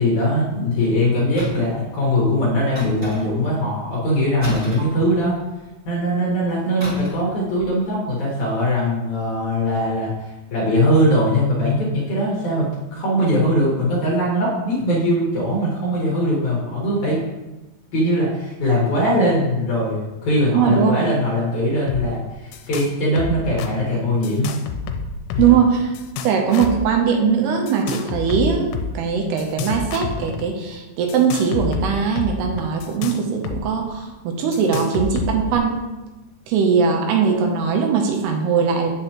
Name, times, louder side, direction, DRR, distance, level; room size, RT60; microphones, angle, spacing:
voice 1, 0.0-5.4 5.9-17.2 17.9-24.5 25.3-25.5, equal, 55° left, -5 dB, 2.3 m, -21 dB
sound 1, 1.4-1.8 2.8-3.5 4.4-5.6 6.8-7.3 7.6-7.8, right 2 dB, 35° right, 1.4 m, -33 dB
voice 2, 20.5-21.0 25.4-25.9 26.2-35.8 36.5-38.9, right 6 dB, 80° right, 2 dB, 2.7 m, -20 dB
sound 2, 21.9-22.0 22.3-22.9 23.2-23.7 24.2-25.6 25.9-26.9 27.7-28.9 29.4-30.4 31.1-33.6 33.9-34.0 34.5-35.6, left 6 dB, 85° left, 2.7 m, -28 dB
8.0 x 6.6 x 2.9 m, 1.1 s
omnidirectional pair, 4.9 m